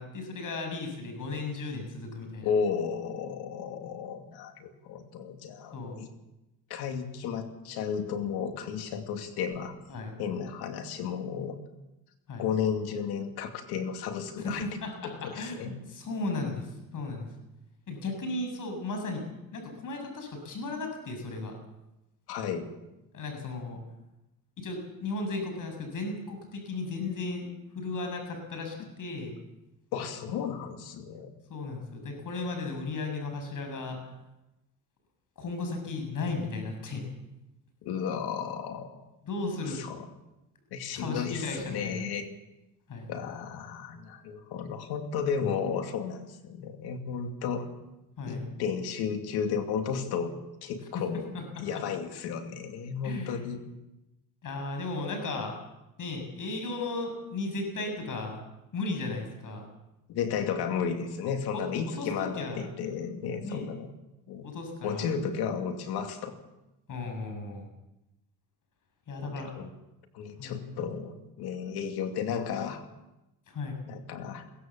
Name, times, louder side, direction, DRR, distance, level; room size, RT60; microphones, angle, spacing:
voice 1, 0.0-2.5 5.7-6.0 9.9-10.1 12.3-12.5 14.4-17.3 17.9-19.2 19.5-21.5 23.1-23.8 24.6-27.5 27.7-29.3 31.5-34.0 35.4-37.1 39.2-39.8 40.9-42.1 42.9-43.1 48.2-48.4 50.9-51.0 51.3-51.6 53.0-53.5 54.4-55.6 56.0-58.4 58.7-59.6 60.5-60.6 61.5-61.6 62.0-62.6 63.4-63.7 64.4-65.1 66.9-67.7 69.1-69.5 70.4-70.8 73.5-73.8, left 3 dB, 55° left, 4 dB, 7.1 m, -35 dB
voice 2, 2.4-6.1 6.7-9.7 10.2-11.6 12.4-14.7 15.0-15.7 22.3-22.7 29.9-31.3 37.8-39.0 39.7-40.0 40.7-42.3 43.1-47.7 48.3-50.3 50.6-51.3 51.6-53.6 60.1-63.9 64.3-64.5 64.8-66.3 69.2-69.7 70.1-72.8 73.9-74.5, left 7 dB, 90° left, 5 dB, 2.6 m, -33 dB
22.5 x 16.5 x 7.3 m, 0.96 s
cardioid pair, 95°, 37 cm